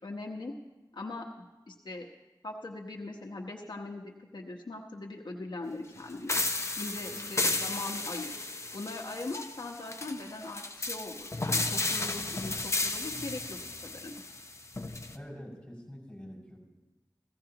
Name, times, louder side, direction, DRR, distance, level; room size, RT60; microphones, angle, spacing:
voice 1, 0.0-0.5 0.9-2.1 2.4-6.4 6.7-8.4 8.7-14.1, left 2 dB, 75° left, -1 dB, 1.1 m, -40 dB
sound 1, 6.3-15.2, left 2 dB, 35° left, 0.7 m, -33 dB
voice 2, 15.1-16.6, equal, 10° left, -4 dB, 5.7 m, -46 dB
16.0 x 15.5 x 2.9 m, 1.1 s
wide cardioid pair, 65°, 8 cm